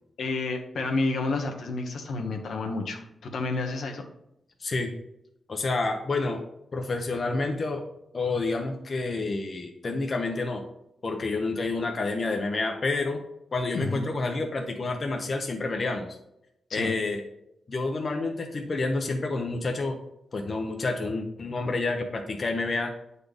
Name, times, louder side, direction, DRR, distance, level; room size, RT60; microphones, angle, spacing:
voice 1, 0.2-3.0 3.3-4.0 13.7-14.1 16.7-16.9, left 3 dB, 75° left, 3 dB, 1.0 m, -30 dB
voice 2, 4.6-4.9 5.5-6.4 6.7-7.8 8.1-10.6 11.0-13.2 13.5-16.1 16.7-17.2 17.7-20.0 20.3-22.9, left 3 dB, 40° left, 3 dB, 0.7 m, -29 dB
8.4 x 4.1 x 3.4 m, 0.83 s
cardioid pair, 100°, 0 cm